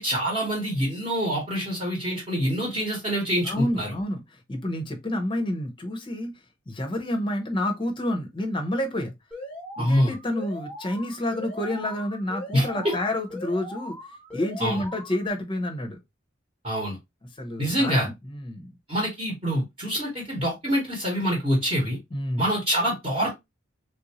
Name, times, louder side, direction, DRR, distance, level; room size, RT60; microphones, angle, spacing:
voice 1, 0.0-3.9 9.8-10.1 12.5-12.9 14.6-14.8 16.6-17.0 17.6-18.1 18.9-22.0 22.4-23.3, equal, 25° right, 1.1 m, -25 dB
voice 2, 3.4-6.3 6.7-9.1 9.8-14.0 14.3-16.0 17.4-18.7 22.1-22.5, left 1 dB, 25° left, 0.7 m, -29 dB
Alarm, 9.3-15.3, left 1 dB, 5° left, 1.2 m, -40 dB
3.3 x 2.6 x 2.9 m
head